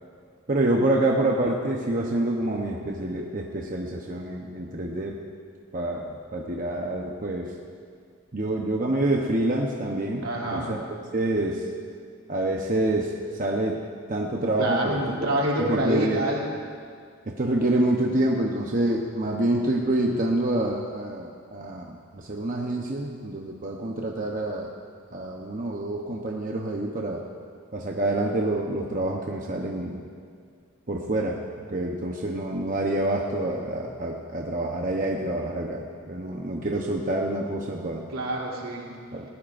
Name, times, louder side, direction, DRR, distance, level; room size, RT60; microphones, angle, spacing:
voice 1, 0.5-5.2 5.7-7.5 8.3-10.2 10.5-10.9 11.1-11.7 12.3-13.1 13.4-13.8 14.1-15.0 15.6-16.3 17.3-24.7 25.1-27.3 27.7-30.0 30.9-31.4 31.7-38.1 39.1-39.3, right 1 dB, 40° right, -1 dB, 0.9 m, -27 dB
voice 2, 10.2-10.7 14.6-16.5 38.1-38.9, right 1 dB, 80° right, -3 dB, 2.9 m, -27 dB
19.5 x 18.5 x 2.6 m, 2.1 s
head